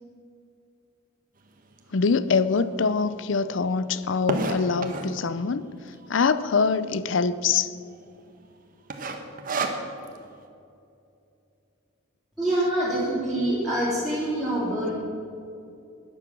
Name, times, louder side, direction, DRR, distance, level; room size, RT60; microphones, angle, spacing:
sound 1, 1.8-1.9 2.5-2.6 2.7-2.8 3.1-5.2 5.9-6.3 6.6-6.7 6.9-7.0 7.6-7.9 8.2-8.5 8.9-10.2, right 3 dB, 45° right, 1.2 m, -30 dB
voice 1, 1.9-5.6 6.1-7.7, left 5 dB, 65° left, 0.6 m, -24 dB
voice 2, 12.4-14.9, right 1 dB, ahead, 3.1 m, -25 dB
13.0 x 10.0 x 6.1 m
head